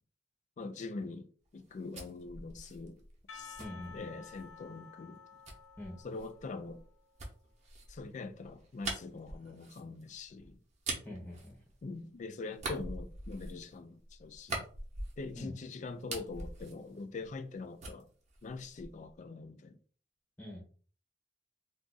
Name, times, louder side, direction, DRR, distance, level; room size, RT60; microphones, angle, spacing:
voice 1, 0.6-3.0 3.3-3.6 3.9-5.2 6.0-6.8 7.9-10.6 11.8-14.6 15.2-18.1 18.4-19.8, left 3 dB, 40° left, 0.3 m, -43 dB
sound 1, 1.5-4.6 5.4-12.1 12.5-15.5 15.8-17.5 17.8-19.1, right 2 dB, 40° right, 0.8 m, -44 dB
Percussion, 3.3-7.2, left 6 dB, 90° left, 0.7 m, -53 dB
voice 2, 3.6-4.1 5.8-6.0 11.0-11.6 15.4-15.5 20.4-20.6, left 1 dB, 10° left, 0.8 m, -44 dB
2.5 x 2.4 x 3.8 m
head